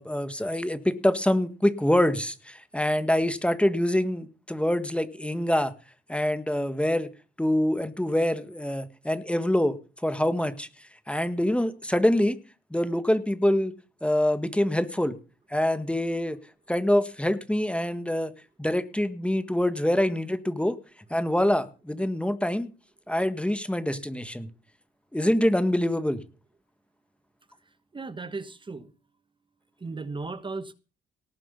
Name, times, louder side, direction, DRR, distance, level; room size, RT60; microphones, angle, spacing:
voice 1, 0.0-5.7 6.1-7.1 7.4-9.7 10.0-10.7 11.1-12.4 12.7-13.7 14.0-15.2 15.5-16.4 16.7-18.3 18.6-20.8 21.1-22.7 23.1-24.5 25.1-26.2, left 1 dB, 5° left, 1.6 m, -25 dB
voice 2, 27.9-28.9 29.8-30.7, right 3 dB, 25° right, 1.3 m, -36 dB
18.5 x 7.8 x 6.9 m
cardioid pair, 90°, 20 cm